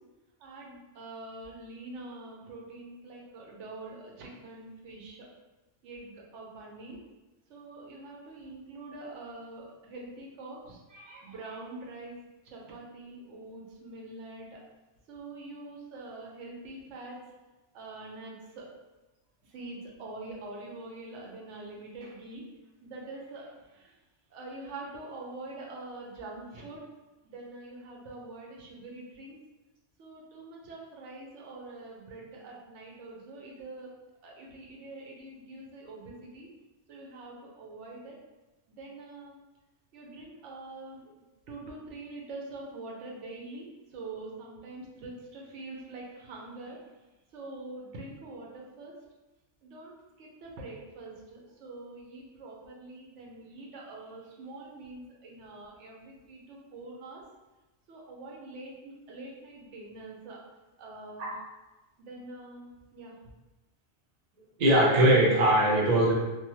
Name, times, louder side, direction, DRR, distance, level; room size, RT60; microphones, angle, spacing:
voice 1, 0.4-5.3 5.8-7.0 7.5-12.1 12.4-14.6 15.1-17.2 17.7-18.7 19.4-22.4 22.8-24.0 24.3-26.8 27.2-29.4 30.0-33.9 34.2-36.5 36.9-38.2 38.7-39.4 39.9-41.1 41.5-47.0 47.3-48.9 49.6-57.2 57.9-60.4 60.8-61.3 62.0-63.2, right 2 dB, 85° right, -2 dB, 1.0 m, -44 dB
voice 2, 64.6-66.1, right 1 dB, 45° right, -3 dB, 0.6 m, -21 dB
2.7 x 2.2 x 3.0 m, 1.1 s
omnidirectional pair, 1.2 m